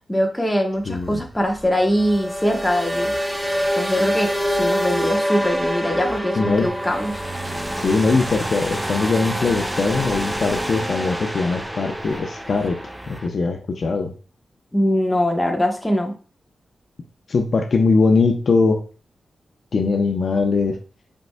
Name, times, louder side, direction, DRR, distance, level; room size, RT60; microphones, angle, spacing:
voice 1, 0.1-3.1 3.7-7.2 14.7-16.1, equal, 10° left, 1 dB, 1.1 m, -22 dB
voice 2, 0.9-1.2 6.4-6.7 7.7-12.8 13.1-14.1 17.3-18.8 19.7-20.8, left 4 dB, 60° left, 4 dB, 0.7 m, -21 dB
sound 1, 0.9-13.3, equal, 10° right, 0.6 m, -26 dB
5.1 x 4.6 x 2.2 m, 0.37 s
cardioid pair, 80°, 0 cm